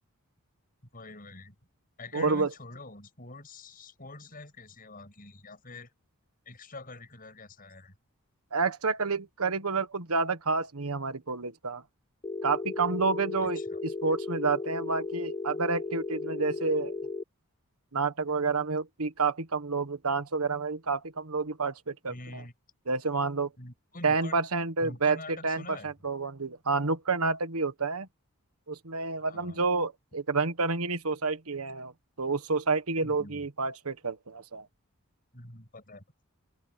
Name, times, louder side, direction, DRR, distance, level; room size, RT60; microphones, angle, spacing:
voice 1, 0.9-1.6 2.0-5.9 6.5-7.9 13.4-13.8 22.1-22.5 23.6-24.4 24.8-25.9 29.2-29.7 33.0-33.5 35.3-36.0, left 2 dB, 40° left, 7.4 m, -45 dB
voice 2, 2.1-2.5 8.5-11.8 12.4-16.9 17.9-22.4 22.9-23.5 24.0-28.1 28.7-31.9 32.2-34.6, right 4 dB, 80° right, 1.5 m, -29 dB
Telephone, 12.2-17.2, left 3 dB, 25° left, 0.3 m, -35 dB
open air
head